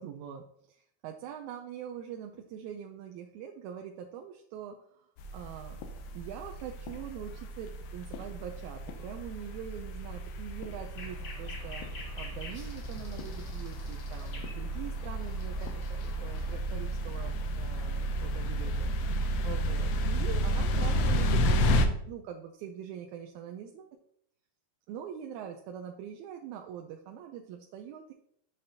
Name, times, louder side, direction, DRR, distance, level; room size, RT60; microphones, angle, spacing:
voice 1, 0.0-5.8 6.1-11.8 12.2-24.0 24.9-28.1, right 9 dB, 85° right, 3 dB, 1.9 m, -43 dB
sound 1, 5.2-21.9, equal, 80° left, 1.8 m, -32 dB
sound 2, 10.9-16.5, left 3 dB, 60° left, 1.1 m, -48 dB
6.6 x 5.7 x 2.7 m, 0.68 s
omnidirectional pair, 3.3 m